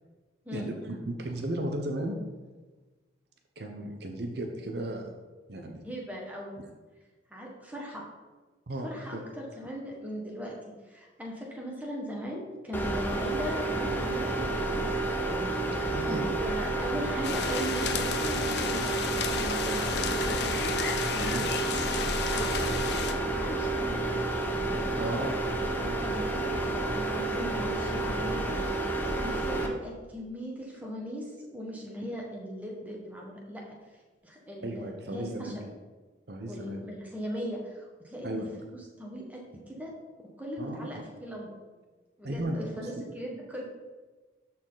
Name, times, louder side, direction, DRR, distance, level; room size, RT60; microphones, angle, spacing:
voice 1, 0.5-2.2 3.6-5.1 5.5-5.8 8.7-9.3 15.9-16.3 21.2-21.5 25.0-25.3 34.6-35.5 36.3-36.9 38.2-38.5 40.6-41.0 42.2-43.0, right 1 dB, 60° right, 3 dB, 0.8 m, -35 dB
voice 2, 5.8-6.5 7.3-8.0 8.8-10.5 10.9-15.0 15.2-20.7 21.1-21.4 22.0-24.1 25.8-28.8 29.2-33.6 34.2-35.6 36.4-39.9 40.4-41.5 42.2-43.6, equal, 10° right, -2 dB, 1.3 m, -39 dB
Room Ambience Fan Off, 12.7-29.7, right 2 dB, 10° left, 0.7 m, -30 dB
sound 1, 17.2-23.1, left 6 dB, 60° left, 0.7 m, -33 dB
12.5 x 4.3 x 3.9 m, 1.3 s
head